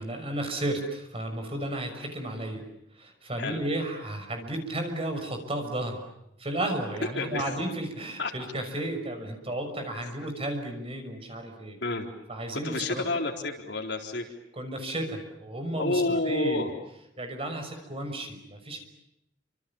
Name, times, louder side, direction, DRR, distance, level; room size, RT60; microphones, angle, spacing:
voice 1, 0.0-2.6 2.9-6.0 6.4-11.8 12.3-13.0 14.5-16.6 17.2-18.8, right 1 dB, 30° right, 5 dB, 6.2 m, -33 dB
voice 2, 12.5-14.2 15.8-16.7, left 2 dB, 65° left, 3 dB, 4.1 m, -29 dB
29.5 x 26.5 x 7.2 m, 0.82 s
head